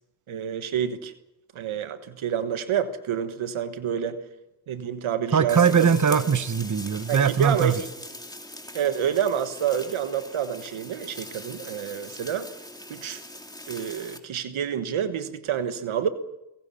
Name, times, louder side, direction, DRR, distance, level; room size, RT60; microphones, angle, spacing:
voice 1, 0.3-1.1 1.5-4.2 4.7-5.9 7.1-7.8 8.7-12.5 12.9-13.2 13.7-16.1, right 8 dB, 80° right, 11 dB, 1.4 m, -28 dB
voice 2, 5.3-7.8, right 7 dB, 40° right, 13 dB, 1.2 m, -21 dB
sound 1, 5.5-14.2, left 1 dB, 10° left, 2.9 m, -42 dB
29.5 x 17.0 x 7.0 m, 0.97 s
supercardioid pair, 45°, 47 cm